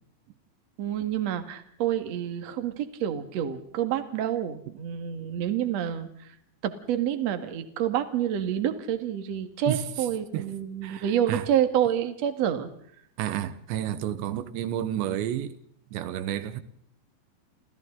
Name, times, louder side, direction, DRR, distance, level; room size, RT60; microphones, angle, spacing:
voice 1, 0.8-6.1 6.6-12.7, right 10 dB, 50° right, 2.4 m, -28 dB
voice 2, 10.8-11.5 13.2-15.6 15.9-16.6, right 11 dB, 90° right, 3.5 m, -30 dB
30.0 x 28.0 x 3.9 m
omnidirectional pair, 5.0 m